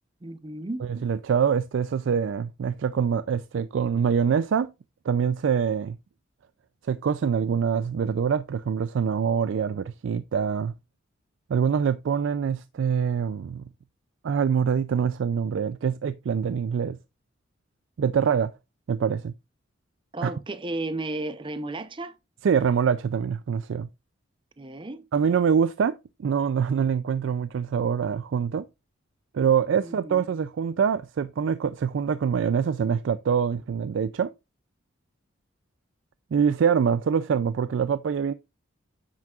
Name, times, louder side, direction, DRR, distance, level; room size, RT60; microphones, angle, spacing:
voice 1, 0.2-0.8 20.1-22.2 24.6-25.0 29.8-30.2, right 2 dB, 25° right, 0.6 m, -33 dB
voice 2, 0.9-4.7 5.1-6.0 6.9-10.7 11.5-13.7 14.2-17.0 18.0-18.5 18.9-19.3 20.2-20.3 22.4-23.9 25.1-25.9 26.2-28.7 29.3-34.3 36.3-38.3, right 7 dB, 65° right, 0.3 m, -24 dB
9.6 x 7.3 x 2.4 m
head